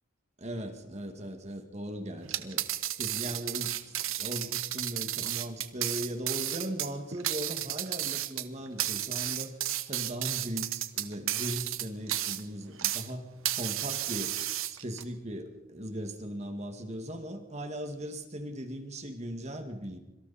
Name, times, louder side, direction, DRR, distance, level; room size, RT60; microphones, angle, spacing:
voice 1, 0.4-2.6 3.0-9.5 9.9-13.3 13.6-14.4 14.7-20.0, equal, 30° right, 5 dB, 2.2 m, -38 dB
sound 1, 2.2-13.1 13.4-15.0, right 13 dB, 75° right, 1.3 m, -33 dB
26.5 x 24.5 x 4.4 m, 0.97 s
head